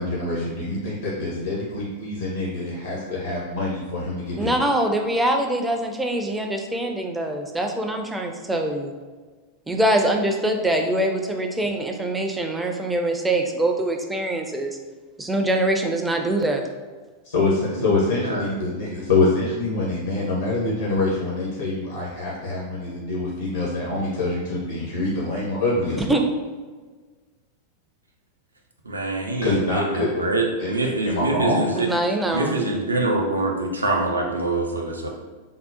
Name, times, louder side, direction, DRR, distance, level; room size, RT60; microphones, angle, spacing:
voice 1, 0.0-4.5 17.3-26.2 29.4-30.1 30.6-31.6, left 2 dB, 70° left, -5 dB, 0.7 m, -25 dB
voice 2, 4.4-8.9 9.7-14.8 15.2-16.6 26.0-26.2 31.7-32.6, right 1 dB, 10° right, 3 dB, 0.4 m, -23 dB
voice 3, 28.9-31.9 32.3-35.1, right 2 dB, 80° right, 0 dB, 0.5 m, -24 dB
3.6 x 2.0 x 2.8 m, 1.4 s
figure-of-eight pair, 90°, 0 cm